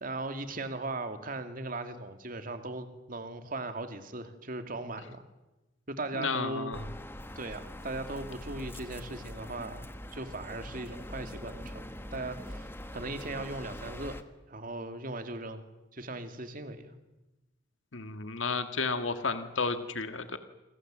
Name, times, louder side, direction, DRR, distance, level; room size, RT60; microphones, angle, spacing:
voice 1, 0.0-5.2 5.9-6.8 7.4-9.9 10.1-15.6 15.9-17.0, right 2 dB, 45° right, 8 dB, 2.5 m, -38 dB
voice 2, 6.1-6.9 17.9-20.4, left 4 dB, 90° left, 9 dB, 1.8 m, -32 dB
sound 1, 6.7-14.2, left 1 dB, 10° left, 1.5 m, -43 dB
27.5 x 25.5 x 7.7 m, 1.0 s
head